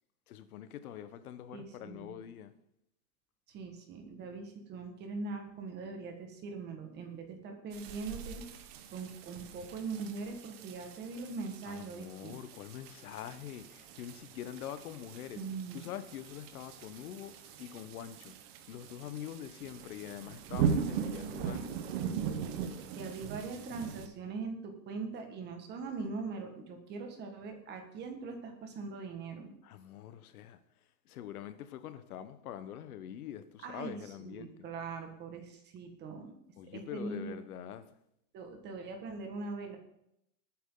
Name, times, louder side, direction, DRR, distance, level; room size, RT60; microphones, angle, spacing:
voice 1, 0.3-2.5 11.6-15.4 15.7-18.4 18.7-21.8 29.6-30.6 31.0-34.6 36.6-37.9, left 10 dB, 60° left, 1.4 m, -44 dB
voice 2, 1.5-2.1 3.5-12.4 15.4-15.8 23.0-29.5 33.6-36.3 36.7-37.3 38.3-39.8, right 4 dB, 20° right, 1.8 m, -41 dB
sound 1, 7.7-24.1, right 7 dB, 35° right, 1.3 m, -40 dB
19.5 x 9.3 x 4.0 m
supercardioid pair, 170°, 49 cm